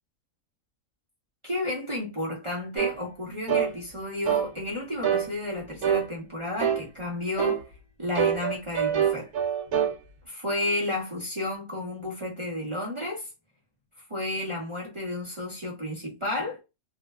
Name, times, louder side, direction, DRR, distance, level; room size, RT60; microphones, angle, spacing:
voice 1, 1.4-7.6 8.0-9.3 10.3-13.3 14.1-16.6, left 2 dB, 35° right, 0.5 m, -32 dB
sound 1, 2.8-3.0 3.5-3.7 4.3-4.5 5.0-5.3 5.8-6.1 6.6-6.9 7.4-7.6 8.2-10.0, right 8 dB, 75° right, 1.0 m, -25 dB
2.6 x 2.1 x 2.3 m
omnidirectional pair, 1.5 m